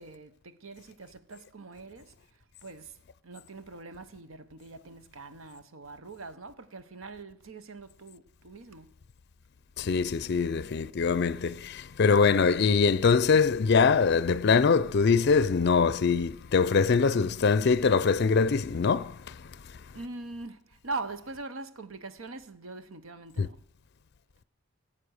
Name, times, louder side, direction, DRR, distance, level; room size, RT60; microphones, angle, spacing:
voice 1, 0.0-8.9 19.9-23.6, right 3 dB, 85° right, 1.0 m, -42 dB
voice 2, 9.8-19.8 23.4-23.5, left 5 dB, 55° left, 0.4 m, -23 dB
18.0 x 7.5 x 6.5 m
head